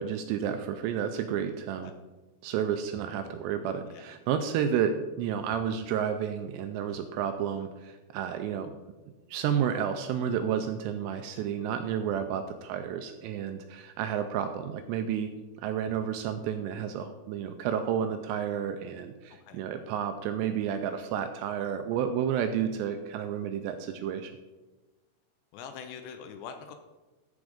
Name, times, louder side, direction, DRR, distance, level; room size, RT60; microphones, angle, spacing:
voice 1, 0.0-1.9 2.4-8.7 9.3-15.3 15.6-24.3, right 8 dB, 85° right, 8 dB, 2.5 m, -31 dB
voice 2, 25.5-26.8, left 7 dB, 80° left, 7 dB, 2.8 m, -43 dB
13.5 x 5.1 x 5.0 m, 1.2 s
omnidirectional pair, 5.3 m